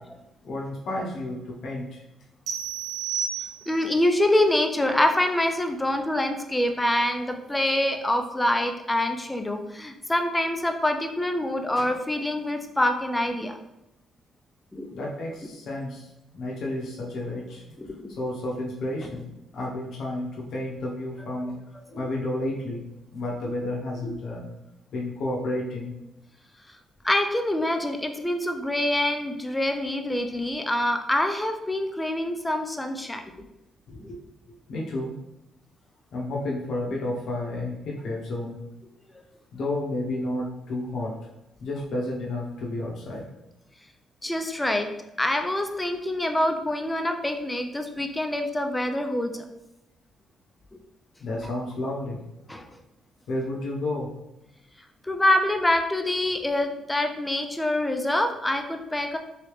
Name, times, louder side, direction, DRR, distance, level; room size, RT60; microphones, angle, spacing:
voice 1, 0.4-2.0 14.9-16.1 16.3-21.6 21.9-22.8 23.1-24.5 24.9-25.9 33.9-34.2 34.7-35.1 36.1-38.6 39.5-41.2 41.6-43.3 51.2-52.2 53.3-54.1, left 1 dB, 70° left, -3 dB, 0.8 m, -31 dB
sound 1, 2.5-4.0, right 7 dB, 85° right, 0.6 m, -31 dB
voice 2, 3.7-13.5 14.7-14.9 17.8-18.2 27.0-33.5 34.0-34.1 44.2-44.9 45.2-49.4 52.5-52.6 55.0-59.2, left 1 dB, 10° left, 5 dB, 0.4 m, -25 dB
3.2 x 2.8 x 3.1 m, 0.93 s
cardioid pair, 90°, 0 cm